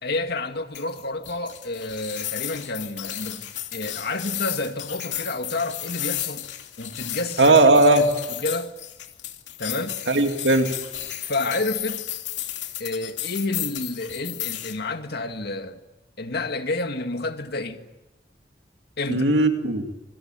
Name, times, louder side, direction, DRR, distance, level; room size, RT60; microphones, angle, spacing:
voice 1, 0.0-6.5 6.8-7.5 7.9-8.1 8.4-8.7 9.6-10.0 11.2-12.2 12.8-15.8 16.2-17.8 19.0-19.3, left 2 dB, 60° left, 2.1 m, -29 dB
sound 1, 0.7-14.8, left 12 dB, 75° left, 2.8 m, -33 dB
voice 2, 7.4-8.0 10.1-10.7 19.1-19.9, right 2 dB, 75° right, 2.5 m, -17 dB
27.0 x 22.5 x 9.1 m
head